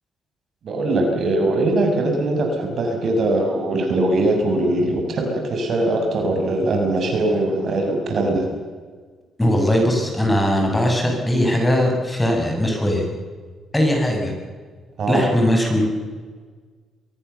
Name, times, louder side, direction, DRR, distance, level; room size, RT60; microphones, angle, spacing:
voice 1, 0.6-8.5 15.0-15.3, right 2 dB, 60° right, 3 dB, 6.6 m, -21 dB
voice 2, 9.4-13.1 13.7-14.3 15.1-15.9, equal, 10° left, 1 dB, 7.1 m, -19 dB
23.5 x 23.0 x 7.1 m, 1.5 s
cardioid pair, 90°, 0 cm